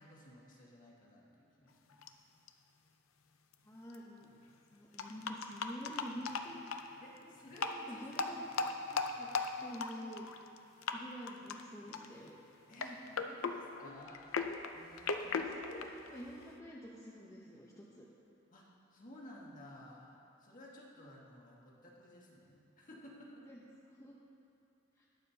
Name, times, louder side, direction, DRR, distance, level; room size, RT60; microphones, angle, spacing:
voice 1, 0.0-2.0 7.0-8.7 12.7-14.3 14.7-15.5 15.8-15.9 18.5-23.4, left 1 dB, 40° left, -4 dB, 1.7 m, -55 dB
sound 1, 2.0-2.1 2.5-2.6 3.5-3.6 3.9-4.0 5.0-6.9 7.5-7.8 8.1-10.6 10.8-11.0 11.3-11.6 11.9-12.3 12.7-16.6, left 4 dB, 85° left, 0.6 m, -38 dB
voice 2, 3.6-4.3 4.7-6.7 7.2-9.3 9.6-10.5 10.9-12.3 13.1-13.5 15.2-18.1 23.4-23.6 23.9-24.2 25.0-25.1, equal, 15° left, -5 dB, 0.8 m, -49 dB
21.0 x 7.3 x 2.8 m, 2.8 s
head